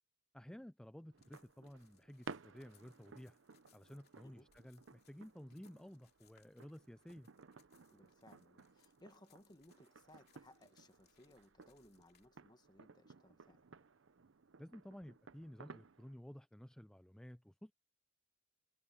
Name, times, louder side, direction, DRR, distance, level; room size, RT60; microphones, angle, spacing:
voice 1, 0.3-3.4 3.7-7.3 14.6-17.7, equal, 5° left, 0.3 m, -54 dB
sound 1, 1.1-16.1, right 4 dB, 80° right, 0.7 m, -58 dB
sound 2, 1.2-12.3, left 10 dB, 55° left, 2.7 m, -75 dB
voice 2, 7.9-13.7, left 1 dB, 20° left, 1.4 m, -64 dB
head